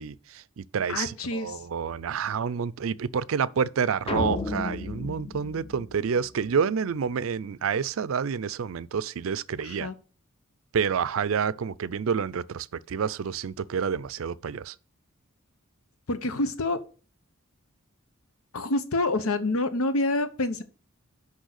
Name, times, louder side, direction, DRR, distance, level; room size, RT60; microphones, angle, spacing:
voice 1, 0.0-9.9 10.7-14.7, right 6 dB, 70° right, 0.4 m, -28 dB
voice 2, 0.9-1.7 9.6-10.0 16.1-16.8 18.5-20.6, left 2 dB, 85° left, 0.9 m, -27 dB
sound 1, 4.1-6.5, left 3 dB, 25° left, 0.8 m, -33 dB
6.4 x 5.5 x 6.5 m
head